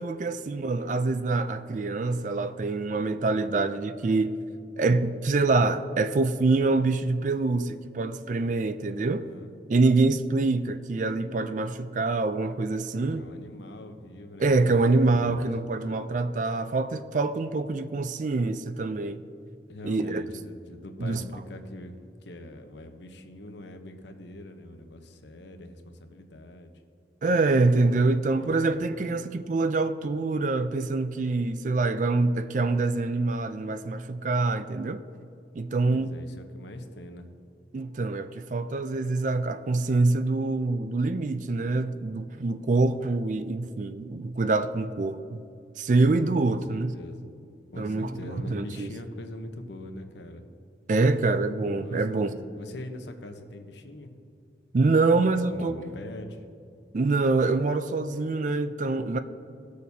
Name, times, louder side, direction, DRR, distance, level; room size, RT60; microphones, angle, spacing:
voice 1, 0.0-4.4 4.8-9.3 9.7-13.3 14.4-19.2 19.8-20.2 21.0-21.2 27.2-35.0 35.5-36.2 37.7-45.4 45.8-46.9 47.8-48.1 48.5-48.9 50.9-52.3 54.7-55.8 56.9-59.2, right 3 dB, 40° right, 0.4 m, -25 dB
voice 2, 8.9-9.5 13.1-15.5 19.7-22.0 22.2-26.7 28.0-28.7 35.9-37.3 46.2-47.2 47.7-50.4 51.8-54.2 55.3-56.4, left 1 dB, 70° left, 0.9 m, -43 dB
17.5 x 6.6 x 2.7 m
head